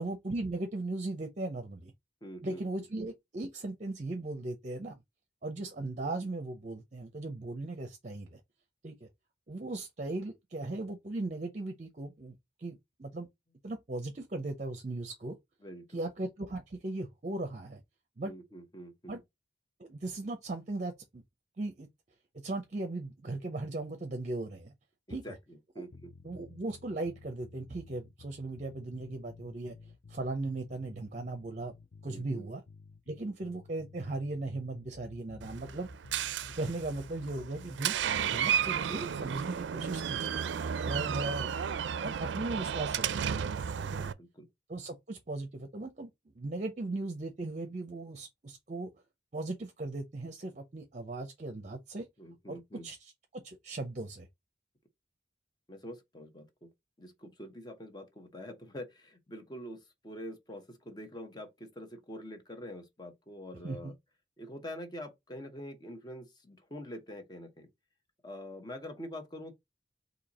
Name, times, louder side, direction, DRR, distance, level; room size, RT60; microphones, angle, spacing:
voice 1, 0.0-1.9 2.4-5.0 5.4-8.4 8.8-9.1 9.5-13.3 13.6-15.4 15.9-17.8 18.2-18.3 19.1-19.2 19.8-21.2 21.6-21.9 22.4-24.7 25.1-25.4 25.8-25.9 26.2-29.7 30.1-31.7 32.0-32.6 33.1-35.9 36.5-40.3 40.8-41.5 42.0-43.3 43.9-44.1 44.7-46.1 46.3-48.9 49.3-52.1 52.5-52.6 52.8-54.3 63.6-63.9, right 2 dB, 40° right, 0.6 m, -38 dB
voice 2, 2.2-2.9 15.6-16.0 18.2-19.2 25.1-26.1 32.1-32.5 40.7-40.9 43.8-44.5 52.2-52.9 55.7-56.7 57.0-63.9 64.4-67.7 68.2-69.5, equal, 25° left, 0.9 m, -45 dB
sound 1, 25.9-37.9, left 4 dB, 40° left, 0.3 m, -53 dB
Door, 35.4-44.1, right 8 dB, 80° right, 0.4 m, -33 dB
4.4 x 2.7 x 4.0 m
head